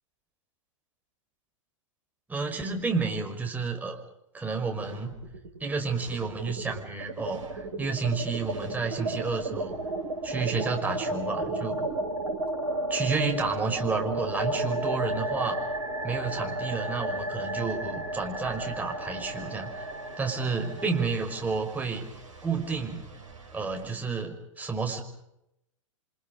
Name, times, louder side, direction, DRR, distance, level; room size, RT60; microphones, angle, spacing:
voice 1, 2.3-4.0 4.3-5.1 5.6-9.7 10.2-11.9 12.9-15.6 16.0-19.9 20.2-22.1 22.4-23.0 23.5-25.0, right 4 dB, 10° right, 3 dB, 5.4 m, -30 dB
sound 1, 4.8-5.6 5.9-23.9, right 1 dB, 75° right, 5.5 m, -34 dB
29.5 x 25.5 x 5.3 m, 0.82 s
figure-of-eight pair, 105°, 17 cm